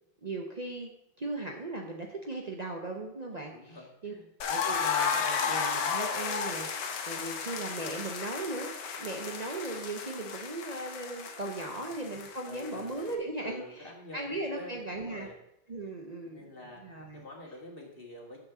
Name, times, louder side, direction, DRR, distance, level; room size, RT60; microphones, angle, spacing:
voice 1, 0.2-0.9 1.2-3.8 4.0-4.1 4.5-15.3 15.7-16.5 16.7-17.2, right 2 dB, 90° right, 1 dB, 0.3 m, -38 dB
voice 2, 3.5-4.3 11.6-11.9 12.4-12.9 13.4-15.4 16.2-18.4, left 2 dB, 30° left, 0 dB, 1.8 m, -47 dB
sound 1, 4.4-13.1, left 6 dB, 65° left, 1.5 m, -33 dB
7.0 x 6.5 x 7.0 m, 0.82 s
omnidirectional pair, 2.1 m